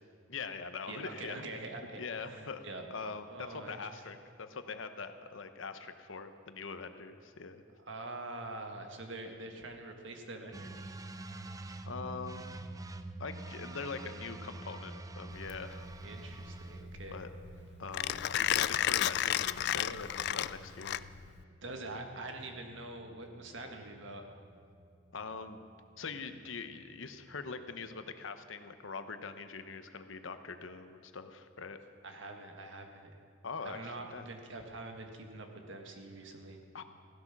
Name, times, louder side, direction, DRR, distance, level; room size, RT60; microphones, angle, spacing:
voice 1, 0.3-1.4 2.0-7.6 11.9-12.5 13.2-15.9 17.1-17.3 17.8-21.0 25.1-25.6 26.0-31.8 33.4-34.3 36.7-36.8, left 4 dB, 75° left, 9 dB, 0.9 m, -43 dB
voice 2, 0.9-2.9 3.3-3.8 7.8-10.8 16.0-17.2 21.6-24.2 32.0-33.2 33.6-36.6, right 2 dB, 65° right, 4 dB, 1.6 m, -45 dB
sound 1, 10.5-28.0, right 2 dB, 20° right, 0.5 m, -48 dB
Mechanisms, 15.3-21.4, left 12 dB, 55° left, 0.3 m, -33 dB
15.5 x 12.0 x 6.0 m, 2.3 s
head